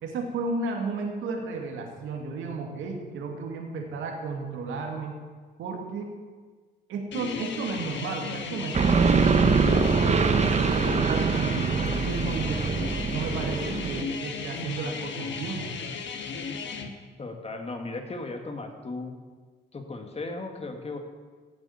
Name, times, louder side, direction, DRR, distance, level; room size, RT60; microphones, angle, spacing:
voice 1, 0.0-5.2 5.6-6.1 6.9-12.6 13.1-15.7, right 4 dB, 85° right, 1 dB, 2.6 m, -33 dB
sound 1, 7.1-16.9, left 5 dB, 65° left, 1.7 m, -35 dB
sound 2, 8.7-14.0, right 5 dB, 35° right, 0.9 m, -23 dB
voice 2, 17.2-19.2 19.7-21.0, left 3 dB, 30° left, 4 dB, 2.4 m, -36 dB
15.0 x 8.8 x 7.3 m, 1.4 s
cardioid pair, 90°, 20 cm